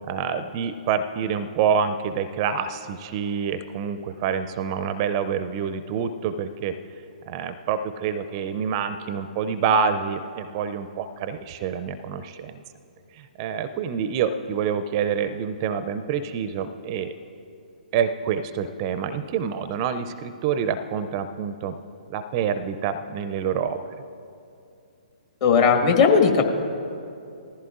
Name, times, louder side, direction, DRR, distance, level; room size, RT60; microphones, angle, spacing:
voice 1, 0.1-6.7 7.3-12.6 13.1-17.1 17.9-21.8 22.1-23.8, right 7 dB, 35° right, 10 dB, 0.5 m, -27 dB
voice 2, 25.4-26.5, left 5 dB, 40° left, 3 dB, 1.5 m, -17 dB
19.5 x 14.5 x 2.5 m, 2.6 s
figure-of-eight pair, 130°, 5 cm